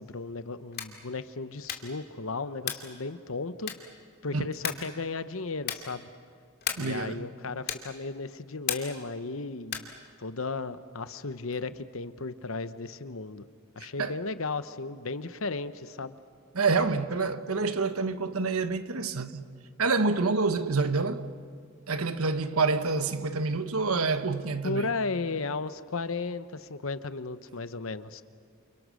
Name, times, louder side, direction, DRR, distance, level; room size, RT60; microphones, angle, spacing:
voice 1, 0.0-3.7 4.2-6.1 6.8-9.9 10.2-13.4 13.8-16.2 24.6-28.2, left 3 dB, 70° left, 1.0 m, -35 dB
sound 1, 0.7-1.0 1.6-2.0 2.6-3.0 3.6-4.0 4.6-5.0 5.6-6.0 6.6-7.0 7.6-8.0 8.6-9.1 9.6-10.0, left 9 dB, 50° left, 2.5 m, -35 dB
voice 2, 6.7-7.2 13.8-14.2 16.5-19.5 19.8-21.3 21.9-24.9, right 4 dB, 90° right, 1.3 m, -27 dB
29.5 x 29.0 x 6.4 m
head